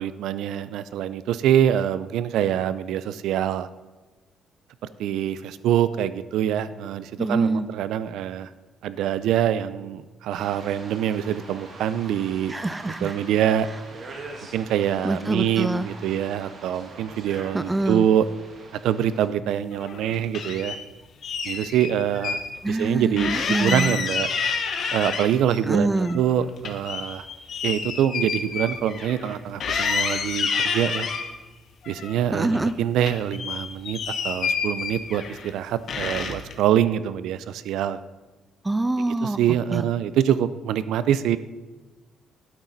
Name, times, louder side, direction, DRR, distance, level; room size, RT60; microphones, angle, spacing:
voice 1, 0.0-3.7 5.0-8.5 8.8-12.5 13.0-13.7 14.5-18.3 18.8-20.8 21.4-22.4 22.7-24.3 24.9-27.3 27.6-31.1 31.9-34.0 34.2-38.0 39.2-41.4, right 10 dB, 80° right, 15 dB, 0.5 m, -25 dB
voice 2, 7.2-7.7 12.5-13.2 15.0-15.9 17.5-18.1 22.6-23.9 25.6-26.2 32.3-32.7 38.6-39.4 39.7-39.9, right 2 dB, 10° right, 14 dB, 0.3 m, -25 dB
sound 1, 10.3-19.3, right 3 dB, 40° right, 1.6 m, -43 dB
sound 2, 19.7-20.8 21.2-22.4 22.8-22.9 23.2-25.6 25.9-29.3 29.6-31.3 31.8-32.7 33.0-35.5 35.9-36.5, left 5 dB, 50° left, 1.2 m, -29 dB
12.0 x 8.9 x 4.1 m, 1.2 s
cardioid pair, 145°, 0 cm